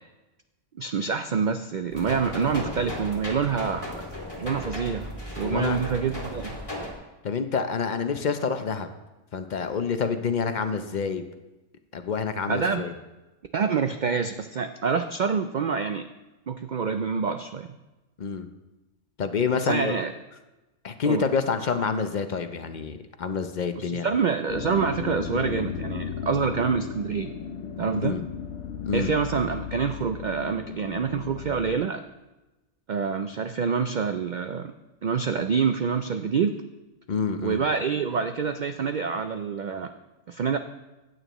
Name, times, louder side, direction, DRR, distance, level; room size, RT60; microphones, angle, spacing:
voice 1, 0.8-3.9 4.4-5.1 5.4-6.6 12.5-12.9 13.5-16.1 16.5-17.7 19.6-20.1 21.1-21.2 23.7-27.3 27.8-28.2 28.9-32.0 32.9-34.7 35.0-36.6 37.4-39.9 40.3-40.6, right 6 dB, 85° right, 8 dB, 0.4 m, -26 dB
sound 1, 1.9-6.9, left 1 dB, 25° left, 2.3 m, -36 dB
voice 2, 5.4-5.8 7.2-8.9 9.3-11.2 11.9-12.9 18.2-18.5 19.2-20.0 20.8-24.1 27.9-28.2 28.9-29.1 37.1-37.6, left 5 dB, 45° left, 8 dB, 0.6 m, -27 dB
sound 2, 24.5-31.8, left 7 dB, 70° left, 1.0 m, -35 dB
15.5 x 9.1 x 3.0 m, 1.1 s
omnidirectional pair, 1.4 m